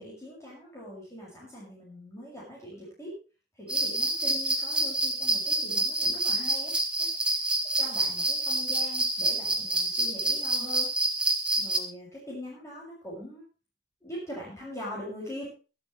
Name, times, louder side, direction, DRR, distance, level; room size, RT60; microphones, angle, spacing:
voice 1, 0.0-3.1 3.6-7.3 7.8-10.9 11.6-13.4 14.0-15.5, equal, 15° left, -6 dB, 6.7 m, -42 dB
sound 1, 3.7-11.8, right 1 dB, 5° right, 1.7 m, -27 dB
24.0 x 8.1 x 3.3 m, 0.34 s
head